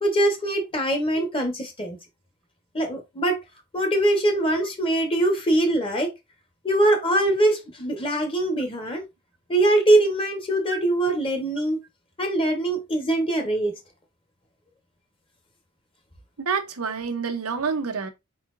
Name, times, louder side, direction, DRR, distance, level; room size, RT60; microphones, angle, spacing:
voice 1, 0.0-2.0 2.7-3.4 3.7-6.1 6.6-9.0 9.5-11.8 12.2-13.7, right 1 dB, 25° left, 1.3 m, -22 dB
voice 2, 10.7-11.1 16.4-18.1, right 5 dB, 90° right, 0.9 m, -28 dB
4.7 x 4.3 x 2.6 m
head